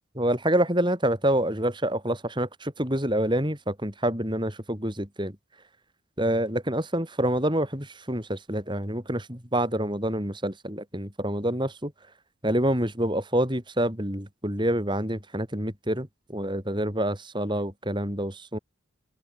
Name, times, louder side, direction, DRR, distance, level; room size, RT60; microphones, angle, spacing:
voice 1, 0.2-5.4 6.2-11.9 12.4-18.6, right 1 dB, 25° right, 7.1 m, -27 dB
open air
head